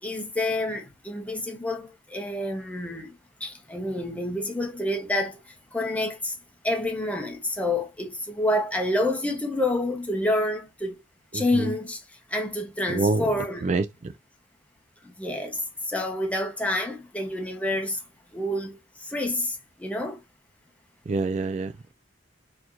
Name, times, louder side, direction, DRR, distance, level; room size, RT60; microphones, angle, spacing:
voice 1, 0.0-3.1 3.4-5.4 5.7-6.4 6.6-11.0 11.3-12.0 12.3-13.7 15.0-18.0 18.3-20.2, left 1 dB, 5° left, 0.9 m, -28 dB
voice 2, 11.3-11.7 12.9-13.2 13.6-13.8 21.1-21.9, right 3 dB, 35° right, 0.3 m, -26 dB
4.2 x 3.0 x 2.5 m
head